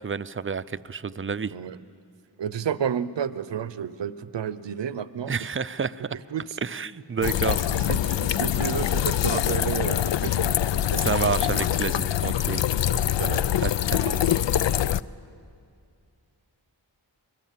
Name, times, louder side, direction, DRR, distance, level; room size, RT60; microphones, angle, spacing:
voice 1, 0.0-1.5 5.3-6.2 6.6-7.6 10.9-12.7 13.6-14.5, right 5 dB, 25° right, 15 dB, 0.5 m, -30 dB
voice 2, 2.4-5.5 6.3-6.6 7.7-11.8 12.9-13.5, right 8 dB, 65° right, 15 dB, 0.8 m, -32 dB
sound 1, 7.2-15.0, left 11 dB, 70° left, 0.5 m, -24 dB
23.0 x 21.5 x 7.5 m, 2.4 s
cardioid pair, 50°, 47 cm